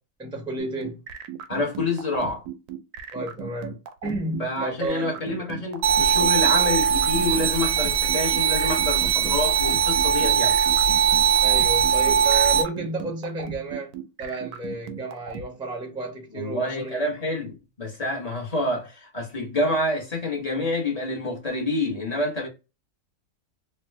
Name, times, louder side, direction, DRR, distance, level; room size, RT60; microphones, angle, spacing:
voice 1, 0.2-1.0 3.1-3.8 4.0-5.2 11.4-17.0, right 2 dB, 5° right, 0.4 m, -32 dB
sound 1, 0.6-15.4, right 9 dB, 80° right, 1.1 m, -36 dB
voice 2, 1.5-2.4 4.4-10.6 16.3-22.5, left 2 dB, 30° left, 0.9 m, -27 dB
sound 2, 5.8-12.6, right 8 dB, 65° right, 0.7 m, -20 dB
3.3 x 2.3 x 3.0 m
omnidirectional pair, 1.6 m